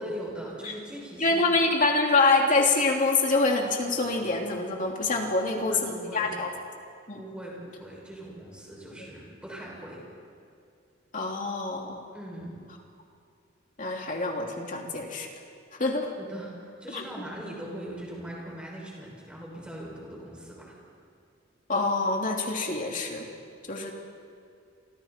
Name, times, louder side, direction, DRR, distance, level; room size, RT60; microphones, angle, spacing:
voice 1, 0.0-1.7 5.2-6.4 7.1-10.0 12.1-12.6 16.2-20.7, right 1 dB, 5° right, -4 dB, 6.3 m, -40 dB
voice 2, 1.2-6.5 7.1-7.2 11.1-12.0 13.8-15.3 15.8-16.1 16.9-17.0 21.7-23.3 23.7-23.9, left 3 dB, 40° left, 1 dB, 2.8 m, -25 dB
29.0 x 24.5 x 4.4 m, 2.4 s
head